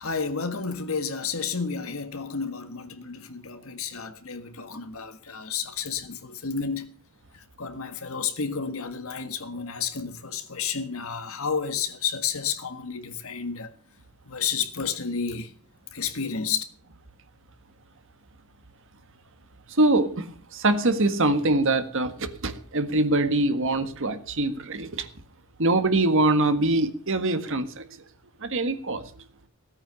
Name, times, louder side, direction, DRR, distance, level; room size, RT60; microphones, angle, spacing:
voice 1, 0.0-6.9 7.6-13.7 14.3-15.5 15.9-16.6, left 6 dB, 65° left, 1.6 m, -31 dB
voice 2, 19.8-25.1 25.6-28.0 28.4-29.0, right 2 dB, 60° right, 1.6 m, -24 dB
17.0 x 9.0 x 6.9 m
head